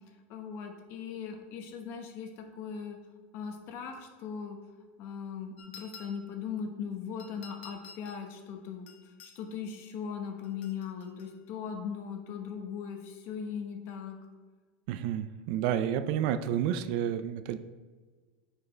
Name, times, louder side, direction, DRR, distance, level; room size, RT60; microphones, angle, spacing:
voice 1, 0.3-3.0 3.3-4.6 5.0-8.9 9.3-14.2, left 7 dB, 45° left, 4 dB, 1.1 m, -39 dB
sound 1, 5.6-6.4 7.2-8.3 8.9-9.4 10.4-11.3, left 5 dB, 75° left, 1.2 m, -51 dB
voice 2, 14.9-17.6, right 10 dB, 55° right, 10 dB, 0.4 m, -30 dB
9.5 x 4.9 x 3.3 m, 1.4 s
supercardioid pair, 160°, 6 cm